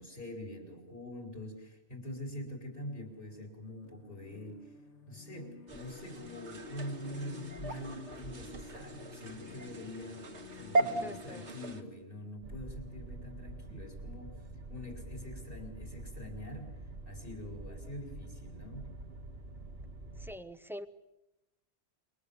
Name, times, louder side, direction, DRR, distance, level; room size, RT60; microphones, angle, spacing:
voice 1, 0.0-4.7 5.1-10.3 10.5-14.4 14.7-16.7 17.1-18.9, left 1 dB, 50° left, 2 dB, 4.7 m, -44 dB
sound 1, 2.8-12.7, left 7 dB, 85° left, 1.8 m, -55 dB
sound 2, 5.7-11.8, right 2 dB, 80° right, 2.2 m, -37 dB
voice 2, 11.0-11.5 20.2-20.9, equal, ahead, 12 dB, 0.8 m, -44 dB
sound 3, 12.4-20.3, right 2 dB, 60° right, 1.8 m, -46 dB
27.0 x 23.5 x 7.1 m, 0.97 s
omnidirectional pair, 1.2 m